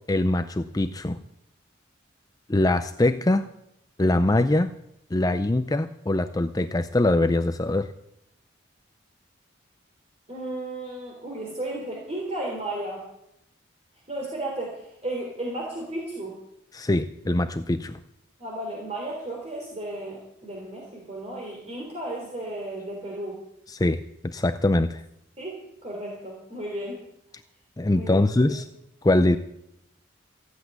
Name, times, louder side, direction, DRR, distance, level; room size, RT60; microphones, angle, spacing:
voice 1, 0.1-1.2 2.5-3.5 4.0-4.7 5.1-7.9 16.7-18.0 23.7-25.0 27.8-28.7 29.0-29.4, left 2 dB, 20° left, 10 dB, 0.5 m, -23 dB
voice 2, 10.3-13.0 14.1-16.4 18.4-23.4 25.4-27.0 27.9-28.6, right 1 dB, 35° right, -2 dB, 3.5 m, -34 dB
15.0 x 8.2 x 9.4 m, 0.81 s
head